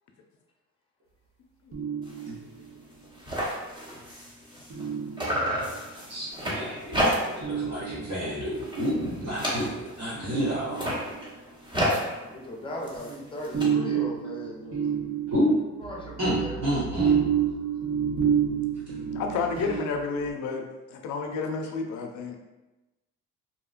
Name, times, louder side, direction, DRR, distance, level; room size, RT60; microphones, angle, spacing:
sound 1, 1.7-2.8 4.7-5.8 7.4-8.5 10.3-11.3 13.0-20.3, right 8 dB, 45° right, 0.5 m, -29 dB
sound 2, 2.0-2.3 2.6-2.7 2.9-4.9 5.2-7.5 7.9-8.2 8.5-10.1 10.6-13.6, equal, 15° right, 0.9 m, -31 dB
voice 1, 6.1-11.0 15.3-15.6 16.2-17.2, equal, 65° right, -12 dB, 1.1 m, -29 dB
voice 2, 12.2-15.0 15.8-17.0, left 1 dB, 15° left, -2 dB, 0.6 m, -38 dB
voice 3, 19.1-20.6 20.9-22.4, left 4 dB, 75° left, 3 dB, 0.5 m, -30 dB
2.7 x 2.1 x 2.4 m, 1.1 s
cardioid pair, 90°, 30 cm